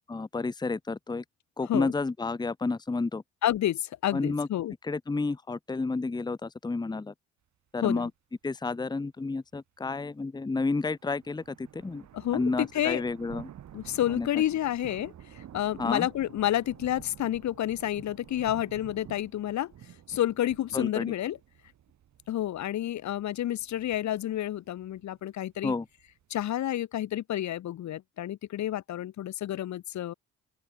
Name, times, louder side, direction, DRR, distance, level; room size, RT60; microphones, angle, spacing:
voice 1, 0.1-1.2 1.6-3.2 4.1-4.5 4.8-7.1 7.7-8.1 8.4-12.0 12.3-13.5 14.2-14.3 15.8-16.1 20.7-21.1 25.6-25.8, left 3 dB, 15° left, 0.9 m, -30 dB
voice 2, 3.4-4.7 7.8-8.1 12.1-13.0 13.7-19.7 20.1-21.4 22.3-25.7 26.3-30.1, left 12 dB, 65° left, 1.3 m, -30 dB
sound 1, 10.9-26.8, right 10 dB, 65° right, 6.0 m, -50 dB
open air
cardioid pair, 90°, 30 cm